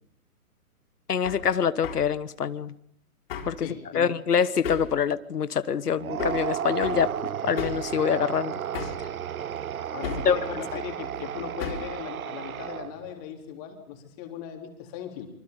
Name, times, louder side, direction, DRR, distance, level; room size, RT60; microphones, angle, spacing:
voice 1, 1.1-2.7 3.5-3.7 3.9-7.1 7.4-8.5 10.2-10.4, left 7 dB, 90° left, 15 dB, 1.3 m, -25 dB
Hammer, 1.2-1.4 1.8-2.1 3.3-3.6 4.6-5.0 6.2-6.5 6.8-7.1 7.6-7.9 8.7-9.1 10.0-10.4 11.6-11.9, left 7 dB, 40° left, 3.7 m, -33 dB
voice 2, 3.6-4.1 9.9-15.3, left 9 dB, 25° left, 3 dB, 3.5 m, -38 dB
sound 1, 6.0-13.1, right 9 dB, 65° right, 0.9 m, -33 dB
26.0 x 25.0 x 5.3 m, 0.72 s
hypercardioid pair, 160°, 45 cm